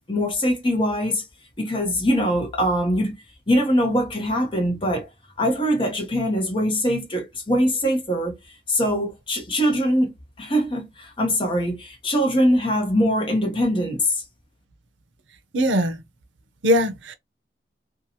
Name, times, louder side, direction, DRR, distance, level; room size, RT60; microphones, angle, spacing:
voice 1, 0.1-1.2 1.6-3.1 3.5-5.1 5.4-8.4 8.7-14.2, equal, 30° left, 0.8 m, -22 dB
voice 2, 15.5-16.0 16.6-17.1, equal, 90° right, 0.6 m, -20 dB
2.8 x 2.3 x 2.7 m
head